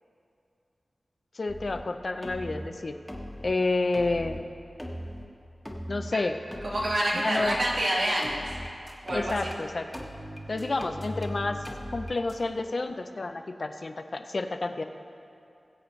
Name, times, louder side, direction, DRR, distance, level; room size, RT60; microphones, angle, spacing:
voice 1, 1.3-3.0 3.4-4.5 5.9-6.4 7.1-7.6 9.1-9.9 10.5-11.6 11.9-14.8, left 3 dB, 55° left, 7 dB, 0.6 m, -29 dB
sound 1, 1.5-1.8 2.2-2.7 3.1-3.5 3.9-4.4 4.8-5.3 5.6-6.1 6.5-7.0 7.4-7.8 8.2-9.6 9.9-12.3, equal, 10° left, 1.3 m, -39 dB
voice 2, 6.6-8.4 9.0-9.3, right 1 dB, 85° right, -5 dB, 2.1 m, -27 dB
21.0 x 7.9 x 3.2 m, 2.6 s
wide cardioid pair, 80°, 0 cm